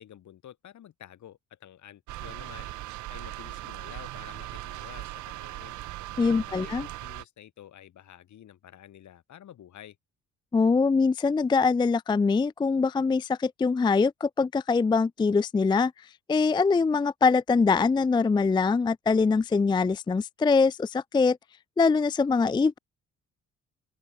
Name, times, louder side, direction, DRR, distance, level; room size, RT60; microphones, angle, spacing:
voice 1, 0.0-2.7 3.1-10.0, left 11 dB, 70° left, 7.6 m, -50 dB
sound 1, 2.1-7.2, right 16 dB, 70° right, 0.6 m, -39 dB
voice 2, 6.2-6.9 10.5-15.9 16.3-21.4 21.8-22.8, left 4 dB, 15° left, 0.4 m, -23 dB
open air
cardioid pair, 90°, 30 cm